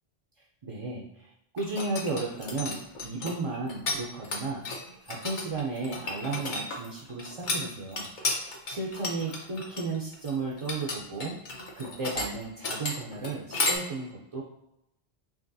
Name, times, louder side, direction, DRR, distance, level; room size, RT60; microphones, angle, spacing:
voice 1, 0.6-4.6 5.0-8.1 8.7-11.4 11.8-14.4, right 3 dB, 40° right, -3 dB, 0.5 m, -34 dB
sound 1, 1.6-4.0 4.2-13.8, left 2 dB, 55° left, 0.9 m, -33 dB
4.9 x 3.0 x 2.6 m, 0.87 s
omnidirectional pair, 1.0 m